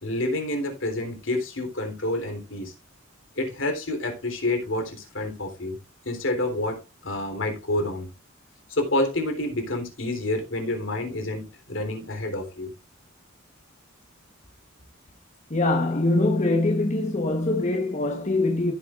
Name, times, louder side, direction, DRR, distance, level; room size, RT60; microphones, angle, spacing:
voice 1, 0.0-2.7 3.4-5.8 6.1-8.1 8.7-12.7, left 1 dB, 70° left, 3.6 m, -28 dB
voice 2, 15.5-18.7, left 2 dB, 35° left, 1.2 m, -23 dB
15.0 x 7.9 x 2.5 m
head